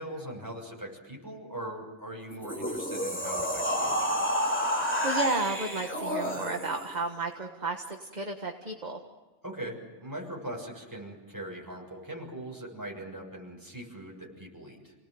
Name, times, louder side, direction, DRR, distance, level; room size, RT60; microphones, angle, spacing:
voice 1, 0.0-4.1 9.4-14.9, right 1 dB, 15° right, -1 dB, 6.7 m, -41 dB
sound 1, 2.3-6.9, equal, 10° left, 3.2 m, -30 dB
voice 2, 5.0-9.0, right 3 dB, 35° right, 3 dB, 1.6 m, -33 dB
29.5 x 18.5 x 7.9 m, 1.4 s
omnidirectional pair, 1.2 m